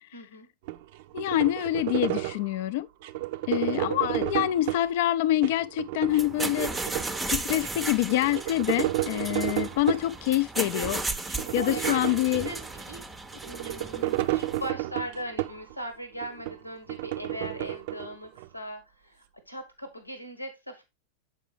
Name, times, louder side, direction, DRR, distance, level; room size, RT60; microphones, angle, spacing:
voice 1, 0.1-0.5 11.6-12.2 12.5-13.0 13.4-20.8, equal, 90° left, 1.1 m, -39 dB
sound 1, 0.7-2.5 3.0-4.9 5.3-7.2 7.6-7.7 7.9-10.1 10.6-10.9 11.2-12.8 13.3-15.7 16.2-18.5, right 17 dB, 50° right, 0.4 m, -32 dB
voice 2, 1.1-2.9 3.5-7.0 7.3-11.0 11.5-12.5 14.0-14.1, left 14 dB, 50° left, 0.4 m, -26 dB
sound 2, 6.1-14.7, right 2 dB, 10° right, 0.6 m, -35 dB
7.4 x 5.3 x 3.1 m
figure-of-eight pair, 90°, 0 cm